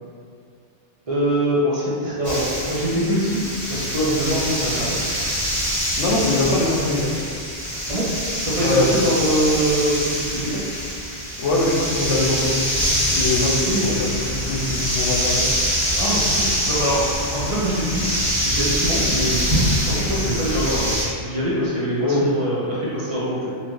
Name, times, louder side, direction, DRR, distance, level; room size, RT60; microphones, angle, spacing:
voice 1, 1.1-3.4 3.7-5.0 7.9-8.1 8.4-10.6 13.4-14.1 15.9-18.1 18.4-20.9 21.2-23.5, right 1 dB, 35° right, -7 dB, 0.7 m, -23 dB
sound 1, 2.2-21.0, equal, 40° left, 1.3 m, -24 dB
voice 2, 6.0-7.2 8.6-8.9 11.4-12.7 13.1-13.6 13.9-15.5 22.0-22.2, left 2 dB, 90° left, -3 dB, 1.0 m, -22 dB
4.1 x 2.5 x 3.1 m, 2.3 s
omnidirectional pair, 1.2 m